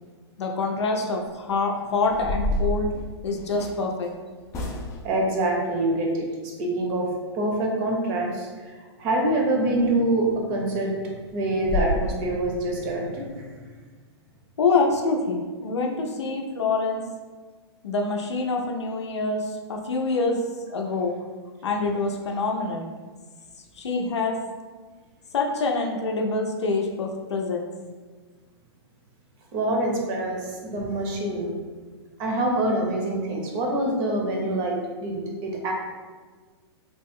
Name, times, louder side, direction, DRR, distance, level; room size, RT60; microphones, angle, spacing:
voice 1, 0.4-2.9 3.2-4.1 14.6-17.0 17.8-20.4 20.7-21.1 21.6-22.9 23.8-24.4 25.3-27.7, left 3 dB, 85° left, 2 dB, 0.5 m, -26 dB
sound 1, 1.2-1.5 2.0-3.8 4.5-5.2 9.7-9.8 10.2-10.4 10.7-10.8 11.2-11.3 11.6-12.0, left 1 dB, 20° left, 0.3 m, -29 dB
voice 2, 5.0-7.1 7.3-13.5 29.5-31.5 32.2-35.7, right 1 dB, 40° right, 0 dB, 0.7 m, -26 dB
2.9 x 2.0 x 3.5 m, 1.4 s
hypercardioid pair, 125°, 14 cm